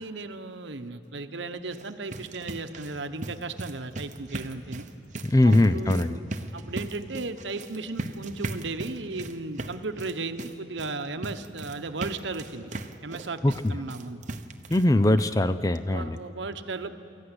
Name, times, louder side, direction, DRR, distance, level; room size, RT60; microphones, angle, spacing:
voice 1, 0.0-4.9 5.4-6.2 6.5-12.7 13.0-13.4 13.7-14.2 15.9-16.9, right 3 dB, 70° right, 9 dB, 1.0 m, -35 dB
sound 1, 1.6-14.9 15.2-15.3 15.8-15.9 16.2-16.3, right 2 dB, 40° right, 0.9 m, -38 dB
voice 2, 5.2-6.2 13.4-13.7 14.7-16.2, left 1 dB, 15° left, 12 dB, 0.4 m, -21 dB
23.5 x 14.5 x 9.8 m, 2.8 s
head